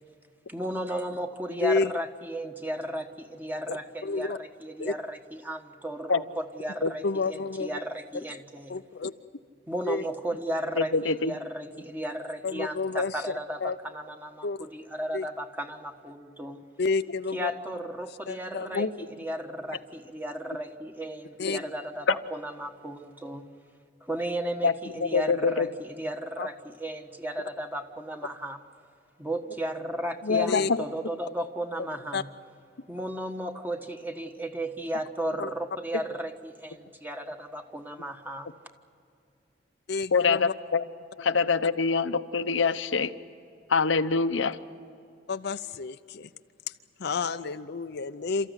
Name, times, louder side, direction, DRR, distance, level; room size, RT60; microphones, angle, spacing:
voice 1, 0.5-8.8 9.7-16.6 17.3-23.5 24.0-28.6 29.2-32.3 32.9-38.5, right 1 dB, 10° right, 5 dB, 1.4 m, -35 dB
voice 2, 1.5-1.9 3.7-3.8 4.0-4.4 4.8-4.9 7.0-7.8 8.7-9.1 9.8-10.0 12.4-13.2 13.6-13.8 14.4-14.7 15.1-15.2 16.8-17.5 18.3-18.8 21.4-21.6 26.4-26.5 30.3-30.7 32.1-32.2 35.4-35.5 39.9-40.5 45.3-46.3 46.7-46.8 47.0-48.5, left 4 dB, 60° left, 9 dB, 0.6 m, -30 dB
voice 3, 10.8-11.3 18.7-18.9 24.6-24.7 25.0-25.7 30.3-30.8 40.1-40.8 41.2-43.1 43.7-44.6, left 4 dB, 85° left, 9 dB, 0.9 m, -25 dB
29.0 x 14.5 x 9.9 m, 2.6 s
head